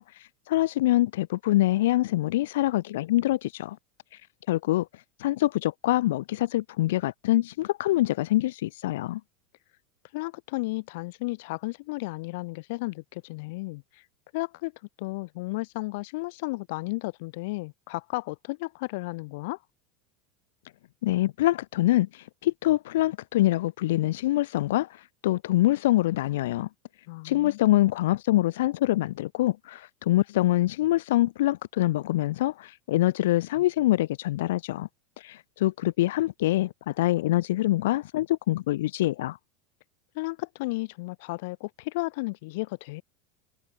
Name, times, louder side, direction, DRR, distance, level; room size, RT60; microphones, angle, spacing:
voice 1, 0.0-3.8 4.5-4.9 5.2-9.2 21.0-26.7 27.2-34.9 35.2-39.4, left 16 dB, 85° left, 1.3 m, -25 dB
voice 2, 10.1-13.8 14.3-14.7 15.0-19.6 27.1-27.6 40.1-43.0, left 24 dB, 70° left, 1.5 m, -33 dB
supercardioid pair, 135°, 0 cm